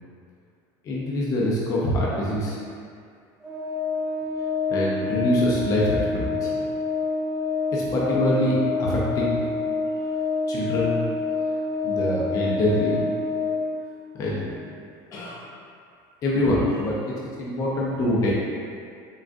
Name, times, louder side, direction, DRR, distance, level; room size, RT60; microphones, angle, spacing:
voice 1, 0.8-2.6 4.7-6.5 7.7-9.4 10.5-11.0 11.8-13.0 14.2-14.4 15.1-15.4 16.2-18.4, left 1 dB, 35° left, -5 dB, 0.6 m, -24 dB
Organ, 3.4-14.1, left 3 dB, 5° right, 1.5 m, -27 dB
3.8 x 3.4 x 2.5 m, 2.3 s
cardioid pair, 150°, 10 cm